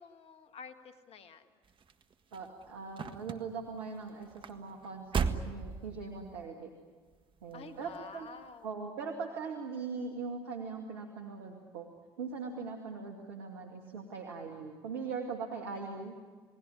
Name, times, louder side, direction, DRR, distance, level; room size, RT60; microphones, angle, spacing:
voice 1, 0.0-1.5 7.5-8.7, left 5 dB, 50° left, 8 dB, 2.0 m, -50 dB
sound 1, 1.6-6.4 7.1-7.5 7.9-8.0, right 5 dB, 40° right, 1.6 m, -37 dB
voice 2, 2.3-6.7 7.4-8.3 8.6-11.9 12.2-16.1, right 4 dB, 80° right, 2 dB, 2.2 m, -40 dB
28.5 x 19.0 x 10.0 m, 1.5 s
hypercardioid pair, 55°, 13 cm